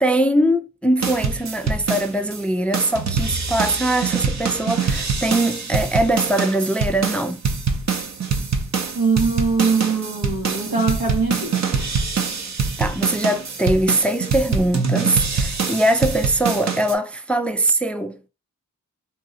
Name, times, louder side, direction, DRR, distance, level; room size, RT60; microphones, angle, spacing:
voice 1, 0.0-7.4 12.8-18.2, right 1 dB, 5° left, 0.3 m, -21 dB
sound 1, 1.0-2.4 2.7-16.9, right 5 dB, 50° right, 0.7 m, -24 dB
voice 2, 8.9-11.7, right 4 dB, 85° right, 1.1 m, -22 dB
3.0 x 2.8 x 3.8 m
cardioid pair, 50°, 35 cm